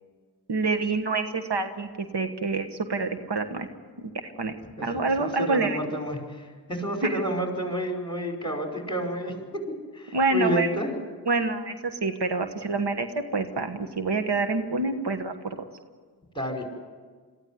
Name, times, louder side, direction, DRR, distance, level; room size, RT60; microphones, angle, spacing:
voice 1, 0.5-3.7 4.0-4.5 4.8-5.8 7.0-7.1 10.1-10.7 11.3-15.6, right 3 dB, 80° right, 8 dB, 1.5 m, -27 dB
voice 2, 4.8-10.9 16.4-16.6, equal, 10° left, 2 dB, 5.2 m, -30 dB
22.5 x 14.5 x 9.7 m, 1.5 s
wide cardioid pair, 50°, 41 cm